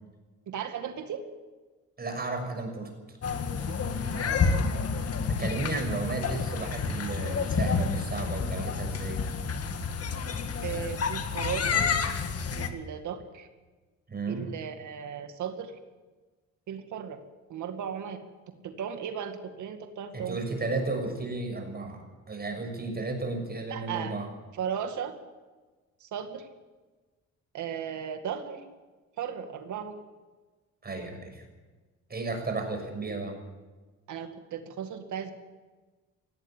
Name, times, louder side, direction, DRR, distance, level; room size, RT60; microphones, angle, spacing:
voice 1, 0.5-1.2 4.1-4.7 10.6-11.9 12.6-13.5 14.3-15.7 16.7-17.2 17.5-18.2 18.6-20.4 23.7-24.2 24.6-25.1 26.0-26.5 27.5-28.6 29.2-30.0 34.1-35.3, right 8 dB, 75° right, 7 dB, 2.2 m, -36 dB
voice 2, 2.0-2.9 5.3-9.2 14.1-14.5 20.1-24.3 30.8-31.4 32.1-33.4, right 3 dB, 30° right, 4 dB, 6.4 m, -33 dB
sound 1, 3.2-12.7, left 5 dB, 55° left, 2.0 m, -29 dB
17.5 x 17.0 x 9.0 m, 1.3 s
cardioid pair, 90°, 30 cm